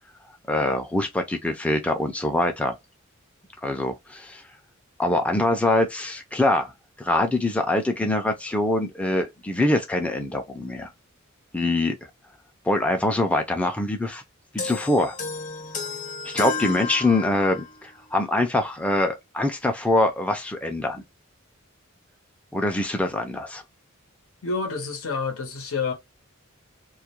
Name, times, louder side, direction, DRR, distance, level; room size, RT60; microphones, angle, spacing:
voice 1, 0.5-2.7 3.6-4.4 5.0-6.7 7.0-10.9 11.5-12.0 12.7-14.2 14.6-15.1 16.2-21.0 22.5-23.6, left 1 dB, 5° left, 0.3 m, -24 dB
sound 1, 14.6-17.8, left 4 dB, 40° left, 0.8 m, -32 dB
voice 2, 24.4-25.9, left 4 dB, 90° left, 0.8 m, -28 dB
2.3 x 2.1 x 2.9 m
head